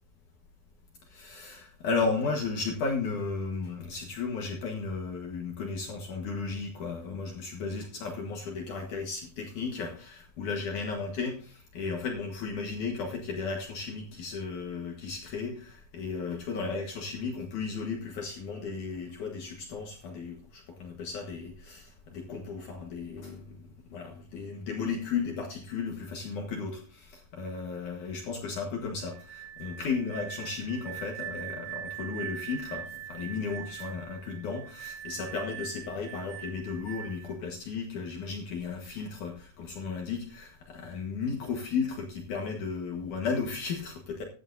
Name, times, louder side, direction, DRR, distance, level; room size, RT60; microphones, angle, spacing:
voice 1, 1.1-23.6 23.9-44.2, left 4 dB, 60° left, 1 dB, 2.5 m, -34 dB
sound 1, 29.1-37.3, right 10 dB, 5° right, 7.0 m, -42 dB
15.5 x 10.5 x 2.6 m, 0.40 s
omnidirectional pair, 4.6 m